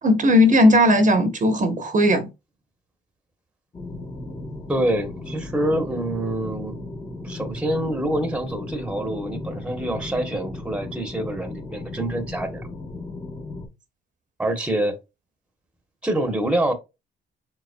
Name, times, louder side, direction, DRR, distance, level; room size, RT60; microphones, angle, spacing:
voice 1, 0.0-2.3, left 1 dB, 40° right, 0.9 m, -17 dB
sound 1, 3.7-13.7, left 2 dB, 25° left, 1.1 m, -36 dB
voice 2, 4.7-6.8 7.2-12.7 14.4-14.9 16.0-16.7, right 1 dB, 5° right, 1.0 m, -26 dB
5.3 x 3.6 x 2.2 m
cardioid pair, 90°, 20 cm